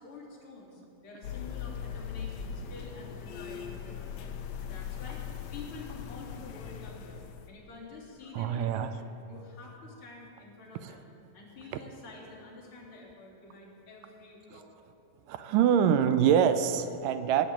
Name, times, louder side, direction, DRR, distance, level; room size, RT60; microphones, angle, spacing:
voice 1, 0.0-4.3 4.6-5.2 5.5-11.1 11.3-14.7, left 3 dB, 40° left, -6 dB, 3.9 m, -48 dB
sound 1, 1.2-7.5, left 8 dB, 70° left, 1.6 m, -40 dB
voice 2, 8.3-8.9 10.8-10.9 14.5-14.6 15.3-17.5, right 8 dB, 80° right, 11 dB, 2.1 m, -25 dB
17.5 x 7.4 x 8.7 m, 3.0 s
omnidirectional pair, 4.0 m